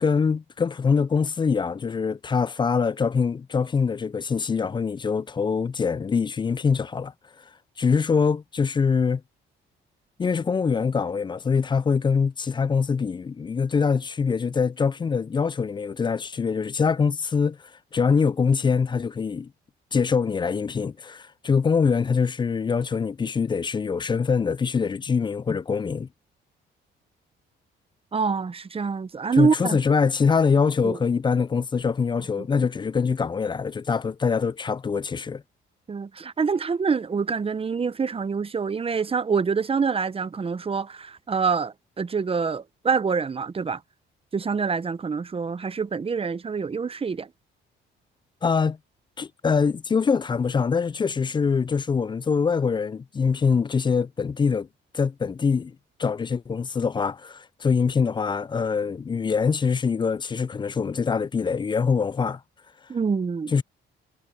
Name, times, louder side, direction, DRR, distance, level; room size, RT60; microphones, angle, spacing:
voice 1, 0.0-7.1 7.8-9.2 10.2-17.6 17.9-19.5 19.9-26.1 29.4-35.4 48.4-48.8 49.2-54.7 54.9-55.7 56.0-62.4 63.5-63.6, left 5 dB, 25° left, 0.3 m, -24 dB
voice 2, 28.1-29.8 30.8-31.0 35.9-43.8 44.3-47.3 62.9-63.5, right 5 dB, 30° right, 0.8 m, -26 dB
cardioid pair, 90°, 20 cm